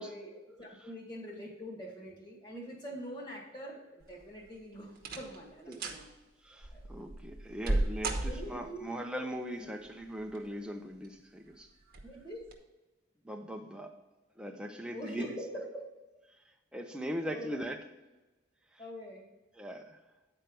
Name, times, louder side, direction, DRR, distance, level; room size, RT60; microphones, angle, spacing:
voice 1, 0.0-6.1 6.7-6.9 8.3-9.0 9.6-9.8 12.0-12.5 14.9-15.9 17.3-17.6 18.8-19.3, equal, 25° left, -2 dB, 2.0 m, -44 dB
sound 1, 4.0-4.5 5.0-5.4 5.7-6.0 6.6-8.8 10.0-10.6 11.0-11.1 11.9-12.1 12.5-12.6, right 2 dB, 50° right, 1.1 m, -35 dB
voice 2, 6.4-11.7 13.2-14.0 14.4-15.3 16.3-16.4 16.7-17.8 18.7-18.8 19.6-20.0, equal, 5° right, 3 dB, 0.7 m, -40 dB
9.9 x 4.5 x 5.3 m, 1.1 s
head